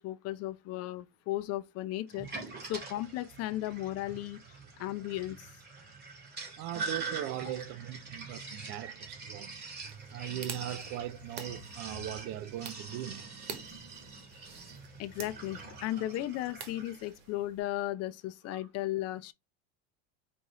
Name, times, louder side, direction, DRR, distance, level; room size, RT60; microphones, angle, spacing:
voice 1, 0.0-2.3 2.6-4.4 4.8-5.5 7.5-7.6 15.0-19.3, left 15 dB, 50° left, 0.5 m, -35 dB
Sink (filling or washing), 2.1-17.1, right 4 dB, 30° right, 2.2 m, -44 dB
voice 2, 6.6-9.7 10.1-13.5 18.5-18.6, right 12 dB, 55° right, 0.5 m, -39 dB
sound 1, 9.8-17.6, right 6 dB, 80° right, 1.1 m, -48 dB
4.8 x 2.6 x 3.1 m
supercardioid pair, 100°, 33 cm